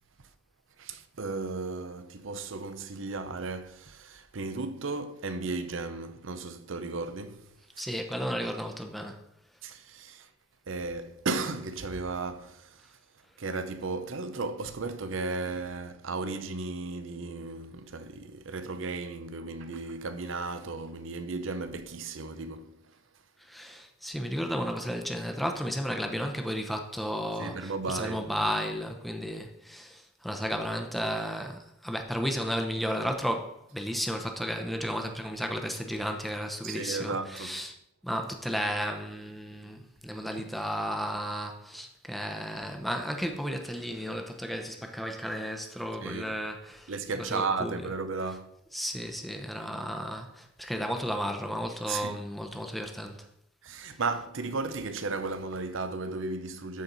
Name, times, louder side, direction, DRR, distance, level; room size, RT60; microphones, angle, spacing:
voice 1, 0.8-7.5 7.8-7.9 9.6-10.3 10.7-12.8 13.4-22.8 27.4-28.2 36.6-37.5 46.0-46.3 46.9-48.5 51.9-52.2 53.6-56.8, right 3 dB, 65° right, 0.7 m, -35 dB
voice 2, 7.8-9.2 23.4-37.8 38.0-47.9 48.7-53.2, equal, ahead, 0.8 m, -33 dB
13.0 x 4.5 x 4.1 m
head